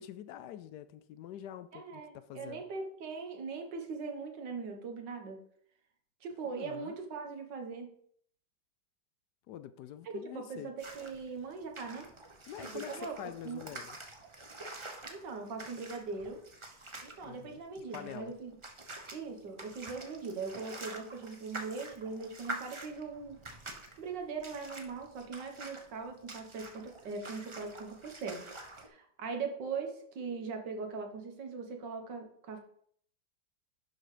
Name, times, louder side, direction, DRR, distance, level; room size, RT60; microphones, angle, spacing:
voice 1, 0.0-2.6 6.5-7.0 9.5-10.7 12.5-14.0 17.2-17.6 17.9-18.3, left 11 dB, 75° left, 1.1 m, -46 dB
voice 2, 1.7-5.4 6.2-7.9 10.3-12.1 12.7-13.6 15.1-16.4 17.0-18.6 19.1-23.4 24.0-28.5 28.8-32.6, right 4 dB, 85° right, 2.0 m, -40 dB
sound 1, 10.8-28.9, right 2 dB, 25° right, 0.7 m, -47 dB
11.0 x 4.0 x 4.9 m
omnidirectional pair, 1.9 m